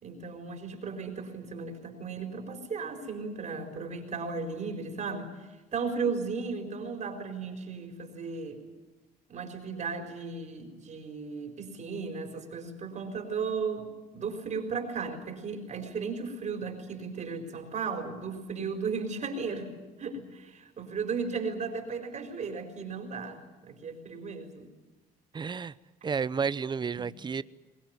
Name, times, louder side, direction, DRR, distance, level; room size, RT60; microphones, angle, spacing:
voice 1, 0.0-5.3 5.7-8.6 9.3-19.7 20.0-24.7 26.9-27.1, right 5 dB, 45° right, 4.5 m, -35 dB
voice 2, 25.3-25.7 26.0-27.4, right 6 dB, 25° right, 0.7 m, -31 dB
23.5 x 20.0 x 9.7 m
cardioid pair, 110°, 17 cm